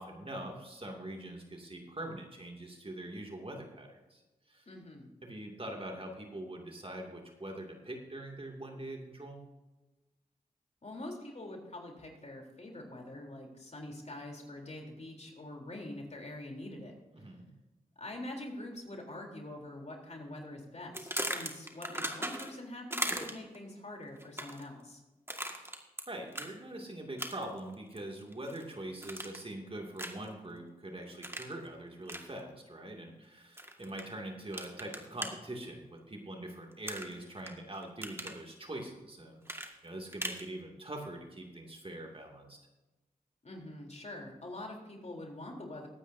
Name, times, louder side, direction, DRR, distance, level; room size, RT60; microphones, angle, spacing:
voice 1, 0.0-4.2 4.5-4.7 5.2-9.4 17.1-17.5 25.5-25.8 26.1-42.6, right 1 dB, 35° right, 1 dB, 2.5 m, -43 dB
voice 2, 4.7-5.1 10.8-16.9 18.0-25.0 43.4-45.9, left 1 dB, 45° left, 0 dB, 3.6 m, -45 dB
sound 1, 20.9-22.6 22.9-23.6 24.2-24.7 25.3-26.0 26.3-26.5 27.2-27.6 28.0-28.6 29.0-29.5 30.0-30.3 31.2-31.5 32.1-32.2 33.6-34.0 34.5-35.3 36.9-37.5 37.8-38.4 39.5-40.4, right 1 dB, 15° right, 1.9 m, -38 dB
21.5 x 8.9 x 2.8 m, 1.1 s
cardioid pair, 40°, 16 cm